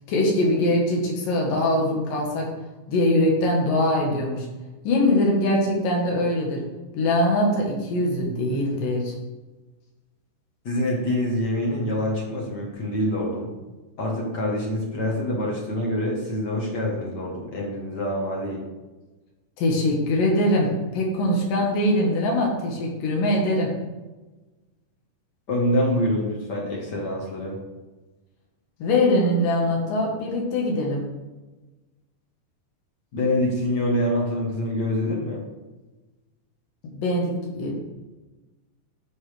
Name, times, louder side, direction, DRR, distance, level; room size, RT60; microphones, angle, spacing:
voice 1, 0.1-2.5 2.9-4.5 4.8-6.6 6.9-9.1 19.6-23.7 28.8-31.0 36.8-37.8, left 1 dB, 75° left, -1 dB, 3.0 m, -22 dB
voice 2, 10.6-13.5 14.0-18.6 25.5-27.6 33.1-35.4, left 1 dB, 60° left, -2 dB, 1.1 m, -25 dB
13.5 x 5.5 x 3.3 m, 1.2 s
omnidirectional pair, 4.1 m